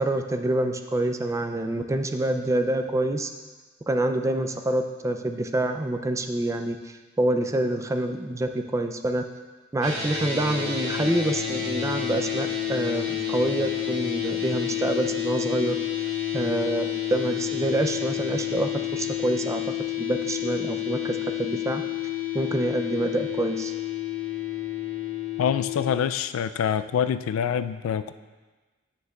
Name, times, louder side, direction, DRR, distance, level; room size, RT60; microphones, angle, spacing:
voice 1, 0.0-3.3 3.9-9.2 9.7-15.8 16.3-21.8 22.3-23.7, right 1 dB, 15° right, 6 dB, 0.3 m, -27 dB
sound 1, 9.8-25.9, left 10 dB, 60° right, 2.2 m, -30 dB
voice 2, 25.4-28.1, left 8 dB, 85° left, 13 dB, 0.3 m, -25 dB
9.4 x 6.4 x 2.3 m, 1.3 s
head